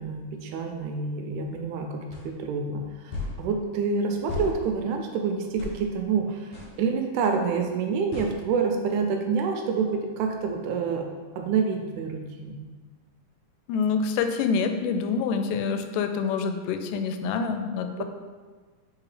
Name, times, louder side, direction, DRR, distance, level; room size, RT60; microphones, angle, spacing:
voice 1, 0.0-11.0 11.3-12.7 17.9-18.0, right 5 dB, 80° right, 3 dB, 1.9 m, -28 dB
sound 1, 2.1-2.3 3.1-3.4 4.3-4.5 5.6-5.8 6.5-6.7 8.1-8.3, left 3 dB, 60° left, 1.6 m, -34 dB
voice 2, 13.7-18.0, left 5 dB, 90° left, 7 dB, 2.2 m, -26 dB
4.8 x 4.3 x 4.8 m, 1.4 s
omnidirectional pair, 3.7 m